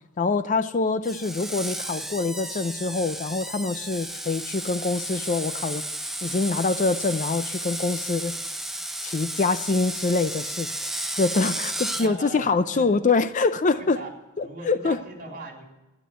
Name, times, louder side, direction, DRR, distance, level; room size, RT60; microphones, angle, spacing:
voice 1, 0.2-5.8 6.2-8.4 9.0-10.7 11.2-14.0 14.4-15.0, left 3 dB, 35° left, 12 dB, 0.5 m, -25 dB
Screech, 1.0-12.1, right 1 dB, ahead, 0.7 m, -33 dB
voice 2, 11.4-12.8 13.7-14.1 14.4-15.6, right 2 dB, 40° right, 1 dB, 3.6 m, -40 dB
12.5 x 9.8 x 9.0 m, 1.1 s
head